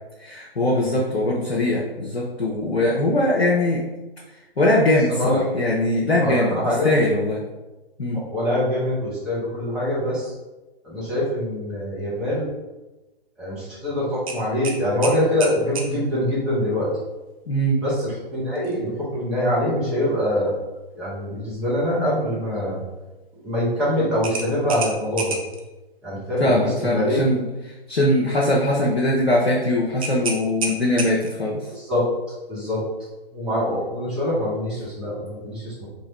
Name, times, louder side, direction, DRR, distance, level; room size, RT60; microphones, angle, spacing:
voice 1, 0.2-3.8 4.6-7.4 8.0-8.2 17.5-17.8 22.0-22.1 26.4-31.6, left 1 dB, 80° left, -4 dB, 0.8 m, -21 dB
voice 2, 6.2-6.9 8.1-10.3 10.8-12.4 13.4-16.9 17.8-20.5 20.9-22.8 23.4-25.4 26.0-27.2 31.7-32.0 32.5-32.8 33.3-35.9, left 1 dB, ahead, -10 dB, 0.8 m, -24 dB
sound 1, 14.3-15.9 18.5-18.8 19.2-19.3 24.2-25.6 30.0-31.4, right 3 dB, 35° right, 0.5 m, -30 dB
2.9 x 2.9 x 4.2 m, 1.1 s
figure-of-eight pair, 130°, 31 cm